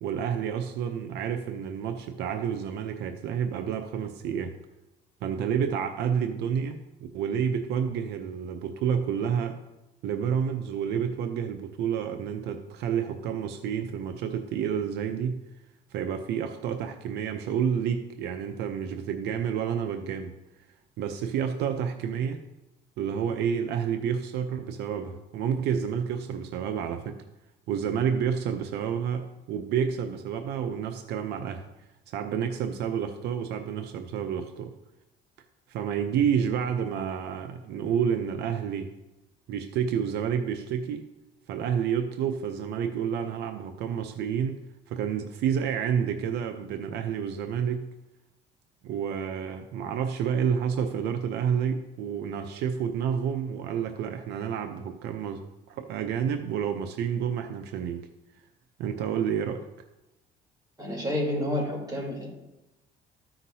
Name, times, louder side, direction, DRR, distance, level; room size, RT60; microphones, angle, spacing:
voice 1, 0.0-4.5 5.2-6.8 7.1-9.6 10.0-15.4 15.9-20.3 21.0-22.4 23.0-27.2 27.7-31.6 32.1-34.7 35.7-38.9 39.5-41.1 41.5-44.6 44.9-47.8 48.8-58.1 58.8-59.7, right 8 dB, 80° right, 6 dB, 0.6 m, -29 dB
voice 2, 60.8-62.3, left 1 dB, 25° right, -2 dB, 3.4 m, -29 dB
14.0 x 5.9 x 2.8 m, 0.96 s
cardioid pair, 110°, 17 cm